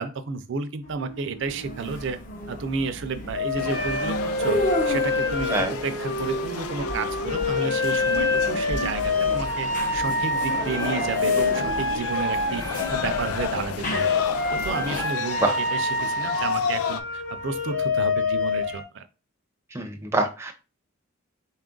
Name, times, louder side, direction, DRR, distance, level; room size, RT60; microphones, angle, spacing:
voice 1, 0.0-2.2 2.5-4.6 4.8-14.1 14.5-19.0, right 4 dB, 60° right, 10 dB, 0.4 m, -32 dB
sound 1, 0.8-2.1 3.3-13.6 13.9-18.8, left 3 dB, 60° left, 1.0 m, -27 dB
sound 2, 1.4-15.0, left 1 dB, 40° left, 0.7 m, -33 dB
sound 3, 3.6-17.0, left 7 dB, 90° left, 0.4 m, -33 dB
voice 2, 19.7-20.5, right 2 dB, 10° right, 4 dB, 0.5 m, -25 dB
4.1 x 2.4 x 3.7 m, 0.31 s
head